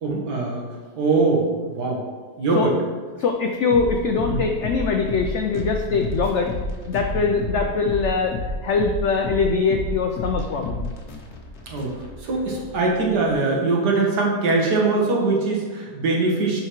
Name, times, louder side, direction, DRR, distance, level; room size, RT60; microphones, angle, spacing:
voice 1, 0.0-0.6 1.0-2.0 2.4-2.7 4.3-4.4 5.9-6.0 7.1-7.3 11.7-16.6, right 3 dB, 70° right, -1 dB, 1.8 m, -22 dB
voice 2, 3.2-6.5 6.9-10.9, left 4 dB, 80° left, 3 dB, 0.6 m, -22 dB
sound 1, 3.7-13.3, left 2 dB, 45° left, 1.2 m, -31 dB
10.5 x 4.4 x 3.1 m, 1.4 s
omnidirectional pair, 1.8 m